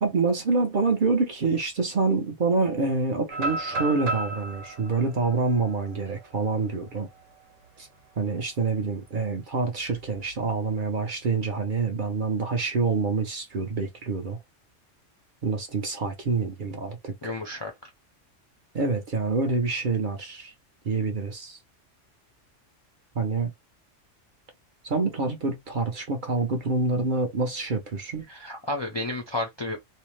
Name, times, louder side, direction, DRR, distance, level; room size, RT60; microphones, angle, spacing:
voice 1, 0.0-7.1 7.8-7.9 8.2-14.4 15.4-17.4 18.7-20.5 20.8-21.6 23.1-23.5 24.8-28.3, right 4 dB, 50° right, 0.7 m, -26 dB
sound 1, 3.3-7.2 7.6-7.7 8.2-8.5 9.9-10.7, right 2 dB, 80° right, 1.1 m, -34 dB
voice 2, 17.2-17.9 28.3-29.8, left 2 dB, 35° left, 0.4 m, -32 dB
2.7 x 2.0 x 3.0 m
omnidirectional pair, 1.3 m